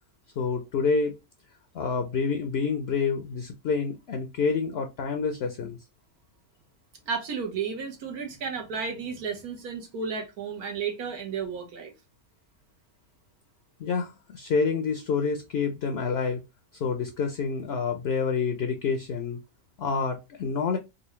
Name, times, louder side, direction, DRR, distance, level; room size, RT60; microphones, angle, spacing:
voice 1, 0.4-1.1 1.7-5.8 13.8-16.4 16.8-19.4 19.8-20.8, left 5 dB, 60° left, 0.7 m, -28 dB
voice 2, 7.1-11.9, right 5 dB, 85° right, 1.5 m, -33 dB
3.8 x 2.4 x 3.0 m
omnidirectional pair, 1.5 m